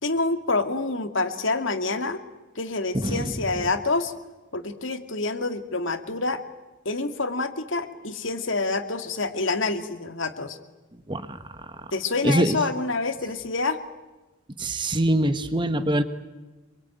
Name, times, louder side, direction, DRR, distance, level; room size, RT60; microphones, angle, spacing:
voice 1, 0.0-2.2 2.6-4.1 4.5-6.4 6.8-10.6 11.9-13.8, left 3 dB, 70° left, 7 dB, 2.4 m, -27 dB
voice 2, 12.2-12.6 14.6-16.0, right 1 dB, 25° right, 9 dB, 1.3 m, -23 dB
27.0 x 23.0 x 9.3 m, 1.1 s
head